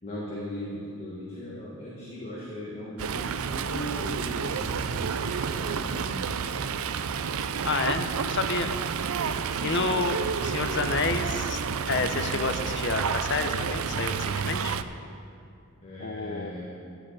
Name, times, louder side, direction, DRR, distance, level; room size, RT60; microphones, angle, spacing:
voice 1, 0.0-6.4 15.8-16.7, left 1 dB, 30° left, -6 dB, 1.7 m, -38 dB
Fowl, 3.0-14.8, right 6 dB, 75° right, 0.4 m, -30 dB
voice 2, 7.6-8.7 9.6-11.6 11.9-14.2 14.4-14.7 16.0-16.7, left 4 dB, 55° left, 8 dB, 0.7 m, -29 dB
11.5 x 6.5 x 7.8 m, 2.5 s
head